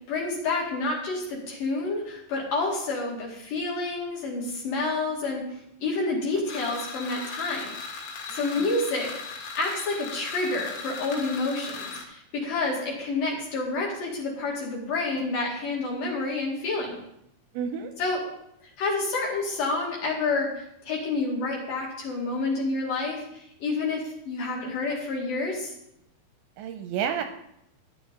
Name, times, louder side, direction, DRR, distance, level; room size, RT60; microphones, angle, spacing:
voice 1, 0.1-5.4 5.8-7.7 8.3-17.0 18.0-18.2 18.8-25.7, left 3 dB, 50° left, -3 dB, 3.5 m, -29 dB
sound 1, 6.5-12.0, left 4 dB, 80° left, 4.3 m, -38 dB
voice 2, 8.3-8.7 17.5-17.9 26.6-27.2, right 8 dB, 85° right, 6 dB, 2.8 m, -31 dB
13.5 x 10.0 x 3.8 m, 0.77 s
omnidirectional pair, 5.6 m